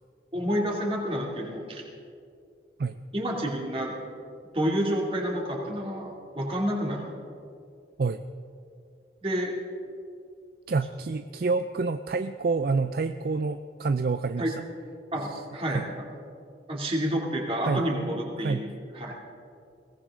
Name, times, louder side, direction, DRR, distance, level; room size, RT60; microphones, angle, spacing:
voice 1, 0.3-1.8 3.1-3.9 4.5-7.1 9.2-9.6 14.4-14.5 15.1-15.8 16.7-18.6 18.9-19.1, equal, 30° right, -2 dB, 2.7 m, -29 dB
voice 2, 10.7-14.6 15.3-15.4 15.7-15.8 17.6-17.9 18.4-18.6, right 4 dB, 55° right, 10 dB, 0.4 m, -28 dB
21.5 x 17.5 x 3.8 m, 2.4 s
head